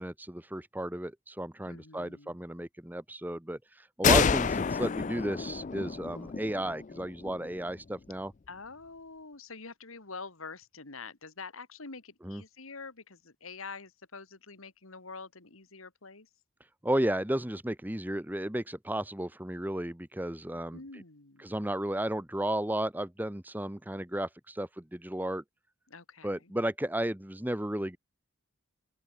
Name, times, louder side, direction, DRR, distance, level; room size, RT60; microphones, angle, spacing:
voice 1, 0.0-8.3 12.2-12.4 16.8-21.0 21.4-25.4 26.2-28.0, right 1 dB, 10° right, 1.0 m, -33 dB
voice 2, 1.7-2.3 8.5-16.3 20.7-21.5 25.9-26.5, left 4 dB, 80° left, 2.4 m, -46 dB
sound 1, 4.0-7.6, left 6 dB, 35° left, 0.4 m, -28 dB
open air
head